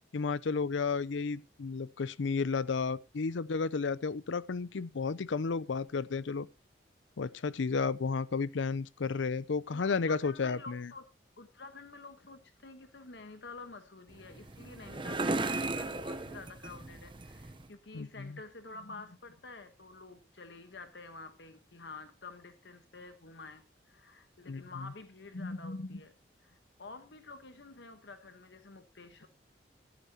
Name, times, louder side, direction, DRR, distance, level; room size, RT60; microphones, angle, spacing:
voice 1, 0.1-6.5 7.2-10.9 17.9-18.4 24.5-24.9, left 4 dB, 85° left, 0.5 m, -32 dB
voice 2, 9.7-11.1 11.4-26.1 26.4-29.3, left 3 dB, 65° left, 1.1 m, -48 dB
sound 1, 14.1-17.7, right 2 dB, 25° right, 0.8 m, -36 dB
14.0 x 11.5 x 2.8 m
head